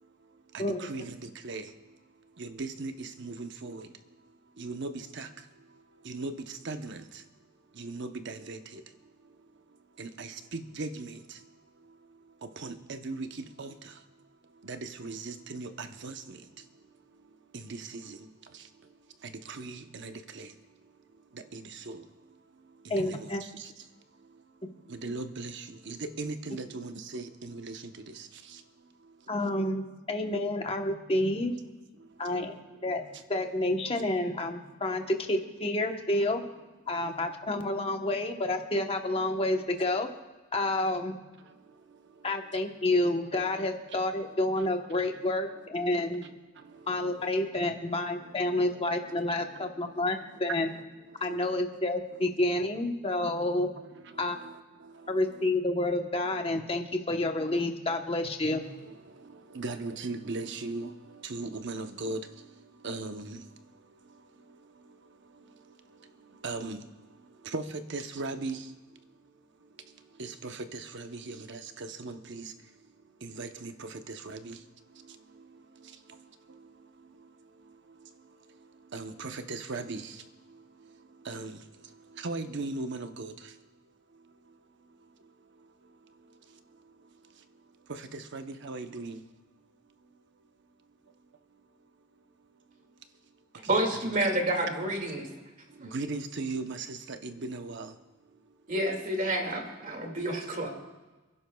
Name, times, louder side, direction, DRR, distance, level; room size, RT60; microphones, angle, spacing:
voice 1, 0.5-1.6 2.4-3.9 4.6-5.3 6.1-7.0 7.8-8.8 10.0-11.2 12.6-13.7 14.6-16.4 17.5-18.2 19.5-20.5 21.5-22.0 23.0-23.3 24.9-27.8 28.2-28.3 51.3-51.4 53.2-53.3 54.4-54.5 59.5-60.9 61.2-62.2 62.8-63.4 66.4-66.8 67.5-67.6 67.9-68.6 70.2-72.5 73.2-74.6 78.9-80.1 81.3-81.6 82.2-83.3 87.9-89.2 93.7-94.3 95.9-97.9, right 3 dB, 55° right, 7 dB, 0.8 m, -38 dB
voice 2, 22.9-23.4 29.3-31.5 32.2-32.5 32.8-33.0 33.3-36.4 36.9-40.1 40.5-41.1 42.2-46.3 46.9-50.7 51.2-53.7 54.2-54.4 55.1-58.6, left 1 dB, 25° left, 4 dB, 1.0 m, -29 dB
voice 3, 93.7-95.3 98.7-100.7, right 1 dB, 40° right, 2 dB, 2.2 m, -29 dB
29.0 x 11.0 x 2.3 m, 1.2 s
head